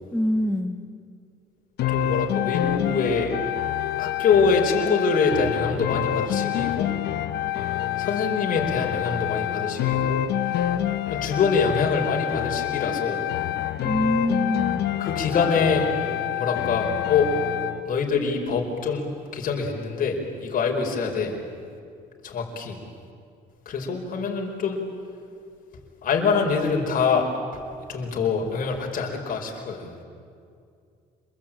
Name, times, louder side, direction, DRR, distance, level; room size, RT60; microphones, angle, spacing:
voice 1, 0.1-0.8 13.8-14.9, left 1 dB, ahead, 4 dB, 1.4 m, -24 dB
sound 1, 1.8-17.8, left 12 dB, 75° left, 1.1 m, -27 dB
voice 2, 1.9-3.4 4.0-6.9 8.0-10.7 11.1-13.2 15.0-15.9 16.4-17.3 17.8-21.4 22.2-22.8 23.6-24.8 26.0-27.3 27.9-29.9, left 5 dB, 55° left, 1 dB, 4.8 m, -25 dB
27.0 x 22.5 x 8.9 m, 2.3 s
cardioid pair, 110°, 17 cm